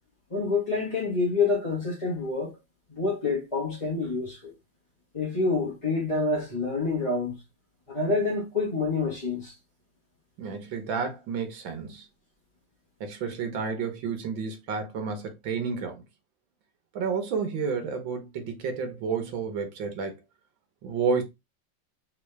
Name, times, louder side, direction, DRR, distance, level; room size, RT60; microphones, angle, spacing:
voice 1, 0.3-2.5 2.9-4.5 5.1-7.4 7.9-9.5, left 3 dB, 20° left, 1.2 m, -27 dB
voice 2, 10.4-12.1 13.0-16.0 17.0-20.1 20.8-21.2, right 5 dB, 85° right, 1.8 m, -30 dB
3.8 x 3.7 x 3.3 m
omnidirectional pair, 2.1 m